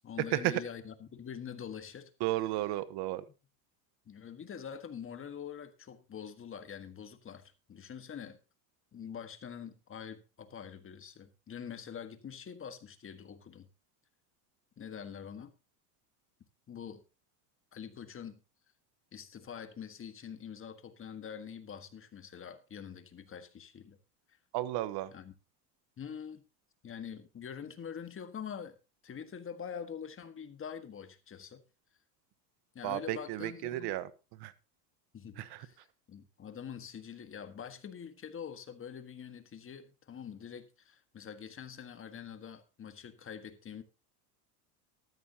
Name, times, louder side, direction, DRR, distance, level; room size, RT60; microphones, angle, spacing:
voice 1, 0.0-2.1 4.0-8.4 8.9-13.7 14.8-15.5 16.7-17.0 17.7-18.4 19.1-24.0 25.1-25.3 26.0-26.4 26.8-28.8 29.0-31.6 32.7-34.0 35.1-35.8 36.1-43.8, left 7 dB, 25° left, 10 dB, 1.6 m, -45 dB
voice 2, 2.2-3.2 24.5-25.1 32.8-34.1 34.4-34.5 35.4-35.7, right 15 dB, 50° right, 15 dB, 1.2 m, -33 dB
13.5 x 12.5 x 2.9 m, 0.31 s
supercardioid pair, 115°, 50 cm